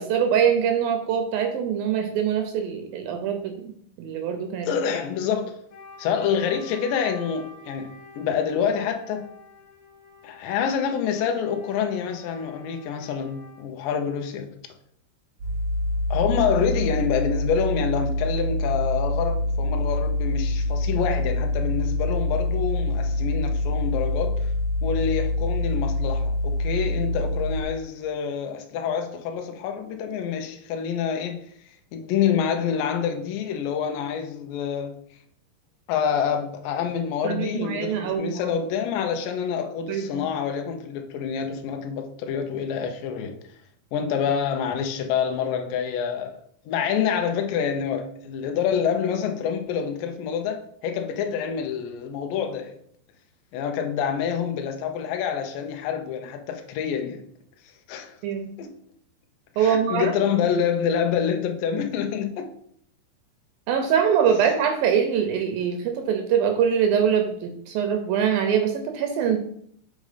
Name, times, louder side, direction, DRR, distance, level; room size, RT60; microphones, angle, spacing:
voice 1, 0.0-3.7 4.0-4.7 37.2-38.4 39.9-40.3 58.2-58.5 59.6-60.1 63.7-69.4, right 8 dB, 75° right, 2.2 m, -23 dB
voice 2, 4.6-5.6 6.0-9.2 10.2-14.5 16.1-24.5 24.8-31.4 31.9-34.9 35.9-43.4 43.9-46.4 46.7-52.7 53.5-57.2 57.9-58.1 58.6-58.7 59.6-62.5, left 7 dB, 75° left, 2.2 m, -27 dB
Wind instrument woodwind instrument, 5.7-13.7, left 2 dB, 40° left, 1.4 m, -48 dB
sound 1, 15.4-27.6, left 1 dB, 30° right, 2.1 m, -25 dB
5.3 x 5.1 x 5.0 m
omnidirectional pair, 4.7 m